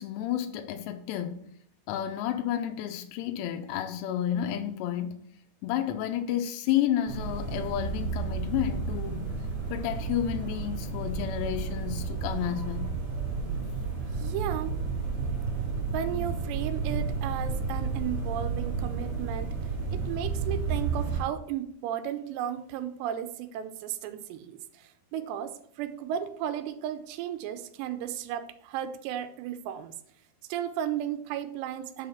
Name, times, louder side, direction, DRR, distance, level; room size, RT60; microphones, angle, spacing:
voice 1, 0.0-1.4 1.9-5.2 5.6-9.3 9.7-12.9, left 11 dB, 80° left, 2.7 m, -31 dB
sound 1, 7.1-21.2, right 4 dB, 50° right, 2.6 m, -32 dB
voice 2, 14.1-14.8 15.9-19.6 19.9-29.9 30.5-32.1, right 10 dB, 80° right, 2.8 m, -34 dB
6.5 x 5.4 x 5.7 m
omnidirectional pair, 5.0 m